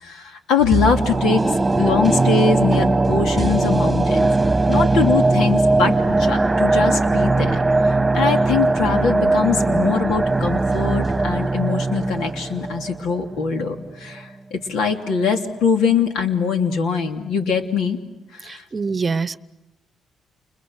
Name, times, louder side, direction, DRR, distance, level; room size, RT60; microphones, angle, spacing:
voice 1, 0.0-1.5 1.8-4.3 4.7-18.0 18.3-18.6, left 5 dB, 85° left, 4 dB, 3.0 m, -22 dB
sound 1, 0.7-13.8 14.1-14.2, right 2 dB, 15° right, 1.5 m, -19 dB
voice 2, 18.4-19.4, right 4 dB, 35° right, 16 dB, 0.9 m, -25 dB
30.0 x 29.5 x 6.5 m, 1.0 s
cardioid pair, 90°, 0 cm